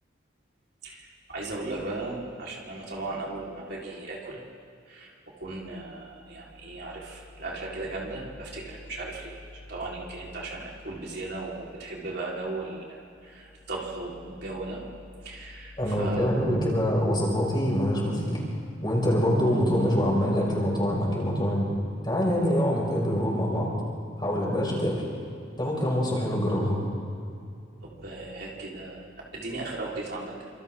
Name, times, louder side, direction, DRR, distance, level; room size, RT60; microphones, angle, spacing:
voice 1, 0.8-4.4 4.9-5.1 5.4-14.8 15.2-16.3 27.8-30.3, right 2 dB, 60° right, -4 dB, 4.5 m, -37 dB
voice 2, 15.8-18.4 18.8-21.7 22.0-23.7 24.2-25.0 25.6-26.8, equal, 25° left, -3 dB, 6.0 m, -25 dB
29.5 x 26.5 x 3.9 m, 2.5 s
head